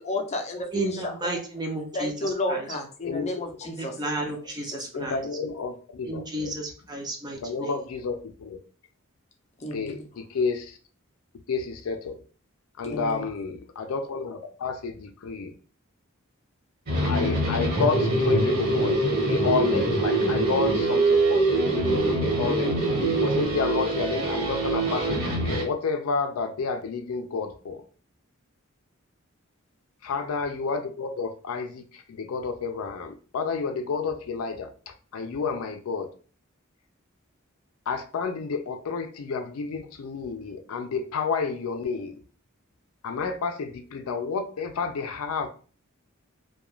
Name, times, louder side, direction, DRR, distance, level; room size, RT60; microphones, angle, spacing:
voice 1, 0.1-1.4 1.9-3.9 4.3-4.4 4.7-5.1 9.6-10.0 12.8-13.2, left 2 dB, 30° left, 3 dB, 0.5 m, -32 dB
voice 2, 0.7-2.7 3.6-5.2 6.0-7.9, right 2 dB, 20° right, 2 dB, 0.5 m, -33 dB
voice 3, 3.0-3.4 4.9-6.5 7.4-8.6 9.7-10.8 11.5-12.1 12.8-15.5 17.0-19.0 19.3-22.7 23.2-27.8 30.0-36.1 37.9-42.2 43.0-45.5, left 5 dB, 80° left, 7 dB, 0.4 m, -30 dB
sound 1, 16.9-25.6, right 2 dB, 45° right, 1.2 m, -24 dB
2.4 x 2.2 x 3.0 m, 0.40 s
head